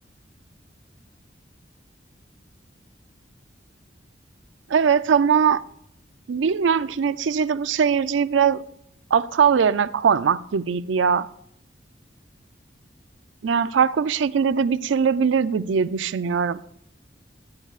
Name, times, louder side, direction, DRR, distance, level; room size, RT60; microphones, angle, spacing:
voice 1, 4.7-5.6 6.3-8.6 9.1-11.3 13.4-16.6, right 6 dB, 90° right, 16 dB, 0.4 m, -21 dB
10.5 x 10.0 x 2.4 m, 0.73 s
head